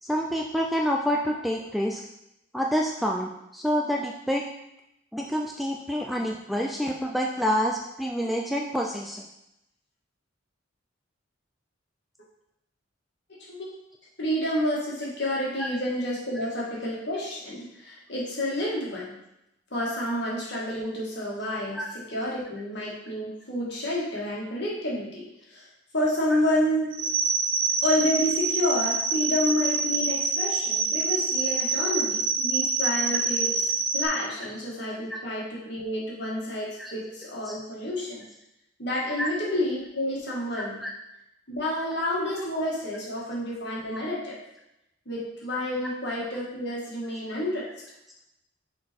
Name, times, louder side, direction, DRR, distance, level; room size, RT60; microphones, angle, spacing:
voice 1, 0.0-2.0 2.5-4.4 5.1-9.2 15.6-15.7 21.7-21.9 35.1-35.2 36.8-36.9 37.5-37.6 39.2-39.3 40.8-40.9 43.9-44.0, equal, ahead, 0 dB, 0.3 m, -27 dB
voice 2, 14.2-19.2 19.7-21.8 22.1-25.7 25.9-26.9 27.8-38.2 38.8-40.8 41.5-44.4 45.1-47.7, left 1 dB, 60° left, -5 dB, 1.9 m, -29 dB
sound 1, 26.9-34.1, right 4 dB, 80° right, 1.1 m, -26 dB
6.1 x 3.8 x 4.4 m, 0.85 s
head